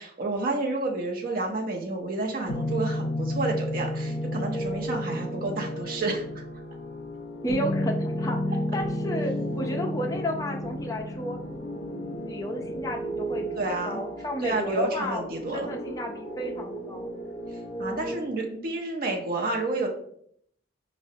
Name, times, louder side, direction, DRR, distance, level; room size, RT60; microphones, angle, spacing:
voice 1, 0.0-6.4 13.6-14.0 14.4-15.7 17.8-19.9, right 2 dB, 50° right, 1 dB, 0.5 m, -30 dB
sound 1, 2.5-18.1, equal, 60° left, 0.6 m, -32 dB
voice 2, 7.4-11.4 12.3-15.2 15.5-17.1, equal, 20° left, 1 dB, 0.4 m, -33 dB
4.9 x 2.0 x 2.6 m, 0.65 s
head